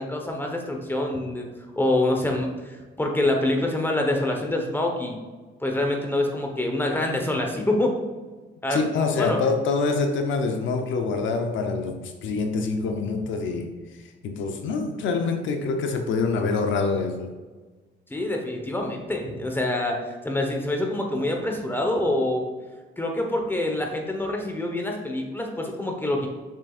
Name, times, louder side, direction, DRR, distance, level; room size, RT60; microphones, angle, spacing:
voice 1, 0.0-1.5 1.8-5.2 5.6-7.9 8.6-9.4 18.1-22.4 23.0-26.3, left 1 dB, 10° left, 2 dB, 1.1 m, -26 dB
voice 2, 8.7-13.7 14.2-17.3, left 4 dB, 80° left, 4 dB, 0.7 m, -25 dB
6.6 x 6.3 x 2.5 m, 1.3 s
cardioid pair, 110°, 19 cm